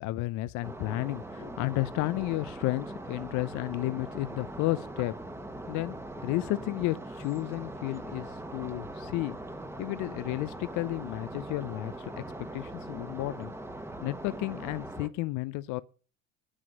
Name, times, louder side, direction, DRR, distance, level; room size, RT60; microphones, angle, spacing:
voice 1, 0.0-5.2 5.7-6.0 6.2-9.4 9.8-13.5 14.0-15.8, left 18 dB, 50° left, 0.6 m, -32 dB
sound 1, 0.6-15.1, right 1 dB, 5° right, 1.3 m, -41 dB
9.8 x 7.6 x 6.3 m
hypercardioid pair, 85°, 38 cm